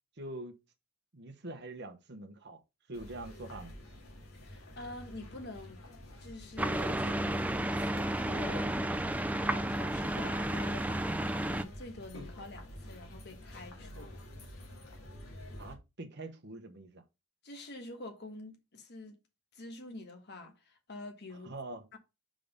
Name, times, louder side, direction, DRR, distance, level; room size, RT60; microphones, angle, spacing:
voice 1, 0.2-0.6 1.1-2.6 2.9-3.7 15.6-17.0 21.4-21.9, right 2 dB, 50° right, 1.1 m, -44 dB
sound 1, 2.9-15.7, left 1 dB, 75° left, 2.0 m, -49 dB
voice 2, 4.3-5.8 6.2-14.2 17.4-19.2 19.5-21.5 21.9-22.0, left 2 dB, 50° left, 1.3 m, -47 dB
sound 2, 6.6-11.6, right 1 dB, 5° right, 0.3 m, -32 dB
5.1 x 3.8 x 5.2 m
head